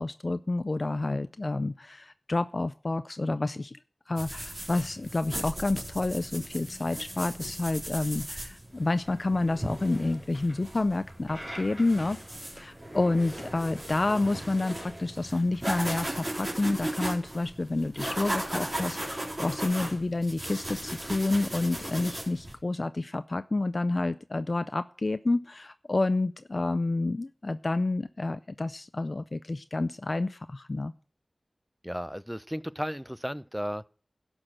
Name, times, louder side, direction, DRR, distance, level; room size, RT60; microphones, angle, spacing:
voice 1, 0.0-3.8 4.1-12.2 12.5-30.9, left 2 dB, 50° left, 0.5 m, -29 dB
sound 1, 4.2-22.5, right 1 dB, 35° right, 4.0 m, -37 dB
voice 2, 31.8-33.9, equal, 5° right, 0.5 m, -34 dB
11.5 x 6.3 x 8.7 m
wide cardioid pair, 60°, 0 cm